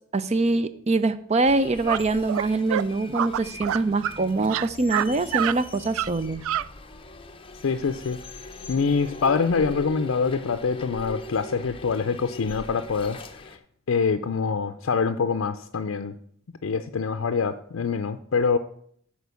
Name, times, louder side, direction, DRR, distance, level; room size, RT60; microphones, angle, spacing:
voice 1, 0.1-6.4, right 3 dB, 35° right, 13 dB, 0.5 m, -24 dB
sound 1, 1.4-13.6, left 2 dB, 25° left, 0.7 m, -41 dB
sound 2, 1.9-2.0 2.3-2.4 2.7-2.8 3.1-4.2 4.4-5.1 5.3-5.6 5.9-6.1 6.4-6.7, right 10 dB, 90° right, 0.3 m, -26 dB
voice 2, 7.6-8.2 8.7-13.6 13.9-16.1 16.6-18.6, left 5 dB, 75° left, 9 dB, 0.5 m, -25 dB
9.3 x 4.4 x 6.9 m, 0.64 s
head